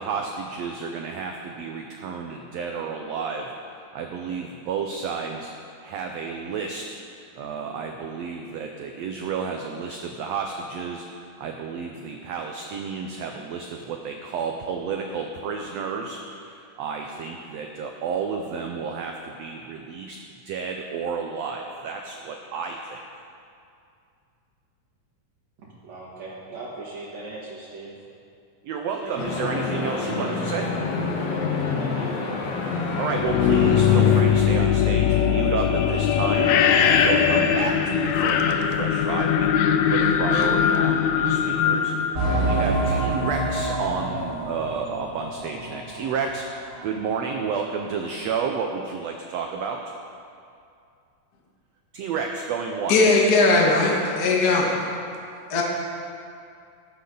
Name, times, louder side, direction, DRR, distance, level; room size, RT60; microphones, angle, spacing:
voice 1, 0.0-3.5 3.9-5.5 5.8-7.0 7.4-20.2 20.5-23.0 28.6-30.7 32.9-36.6 37.0-41.9 42.3-46.5 46.8-49.9 51.9-53.3, right 5 dB, 90° right, 3 dB, 1.4 m, -31 dB
voice 2, 25.8-27.9 29.0-30.5 31.7-32.3 32.7-32.8 37.0-37.1, right 3 dB, 60° right, -7 dB, 2.7 m, -38 dB
sound 1, 29.2-34.2, left 4 dB, 60° left, 2.1 m, -28 dB
sound 2, 33.1-43.0, left 8 dB, 80° left, 1.6 m, -20 dB
sound 3, 42.1-46.4 46.7-46.8 47.4-47.5, right 2 dB, 30° right, 1.9 m, -27 dB
voice 3, 52.9-54.7 55.5-55.6, left 3 dB, 45° left, -1 dB, 1.3 m, -19 dB
15.0 x 11.5 x 3.9 m, 2.5 s
omnidirectional pair, 3.8 m